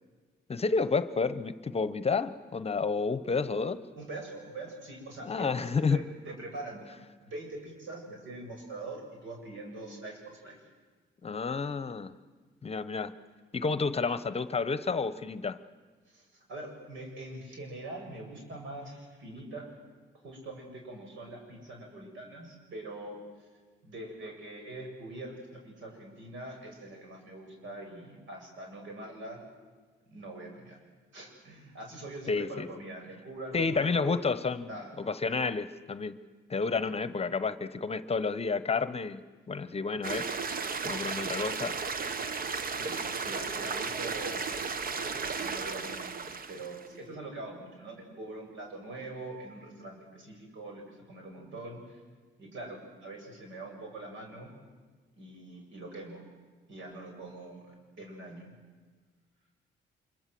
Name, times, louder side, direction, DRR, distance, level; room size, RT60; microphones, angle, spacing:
voice 1, 0.5-3.8 5.2-6.0 11.2-12.2 12.6-13.1 13.5-15.6 32.3-32.7 33.5-36.2 36.5-40.3 40.8-41.8, left 4 dB, 30° left, 14 dB, 1.0 m, -30 dB
voice 2, 3.9-6.8 7.2-10.6 16.0-19.7 20.2-23.5 23.8-29.4 30.1-30.8 31.1-34.2 34.7-34.9 42.7-44.5 44.9-52.0 52.4-54.5 55.2-56.2 56.7-58.5, right 2 dB, 75° right, 2 dB, 7.7 m, -43 dB
sound 1, 40.0-46.9, right 5 dB, 45° right, 1.3 m, -34 dB
26.0 x 23.5 x 7.8 m, 1.4 s
cardioid pair, 90°, 20 cm